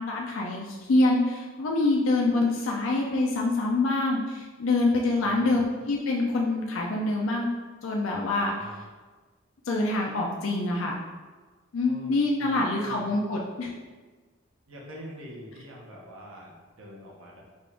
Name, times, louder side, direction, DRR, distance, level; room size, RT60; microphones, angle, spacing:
voice 1, 0.0-7.5 7.8-8.5 9.6-11.0 11.7-13.7, left 2 dB, 75° left, -1 dB, 0.5 m, -25 dB
voice 2, 5.2-5.6 8.5-8.8 11.8-13.2 14.7-17.4, equal, 85° right, -3 dB, 1.0 m, -45 dB
5.2 x 2.5 x 3.4 m, 1.4 s
head